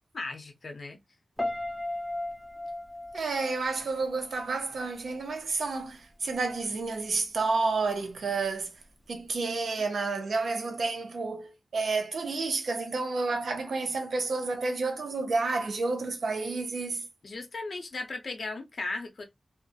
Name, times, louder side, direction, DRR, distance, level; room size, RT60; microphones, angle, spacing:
voice 1, 0.1-1.0 9.7-9.8 17.2-19.2, left 3 dB, 60° left, 0.6 m, -37 dB
Piano, 1.4-4.5 4.8-5.2, left 1 dB, 5° left, 0.7 m, -36 dB
voice 2, 3.1-8.7 9.1-17.1, right 3 dB, 80° right, 0.6 m, -30 dB
2.2 x 2.1 x 2.6 m
wide cardioid pair, 95°, 0 cm